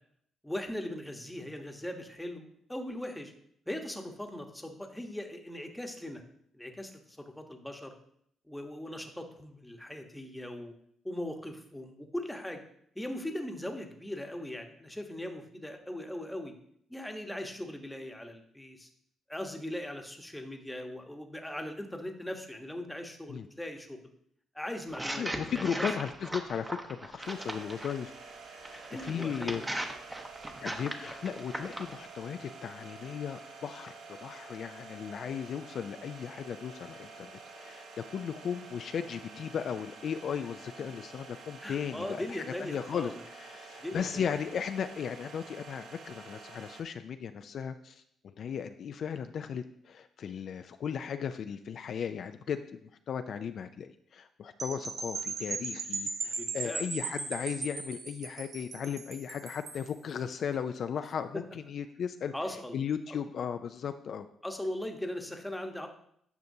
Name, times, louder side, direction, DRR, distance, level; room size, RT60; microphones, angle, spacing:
voice 1, 0.4-3.3 3.7-6.2 6.5-7.9 8.5-10.7 11.0-12.6 12.9-16.5 16.9-18.9 19.3-24.0 24.5-25.9 28.9-29.6 41.6-43.2 43.8-44.3 56.2-56.8 61.3-61.4 62.3-62.8 63.1-63.2 64.4-65.9, left 1 dB, 5° left, 4 dB, 1.0 m, -39 dB
sound 1, 24.9-28.0 28.6-31.9, right 1 dB, 15° right, 0.8 m, -38 dB
voice 2, 25.2-28.1 28.5-29.6 30.6-37.8 38.1-52.6 53.1-62.3 62.7-64.3, left 7 dB, 60° left, 8 dB, 0.3 m, -36 dB
sound 2, 27.2-46.8, right 4 dB, 90° right, 1.1 m, -49 dB
sound 3, 54.6-59.9, right 4 dB, 55° right, 1.0 m, -37 dB
9.4 x 5.7 x 2.7 m, 0.70 s
cardioid pair, 90°, 0 cm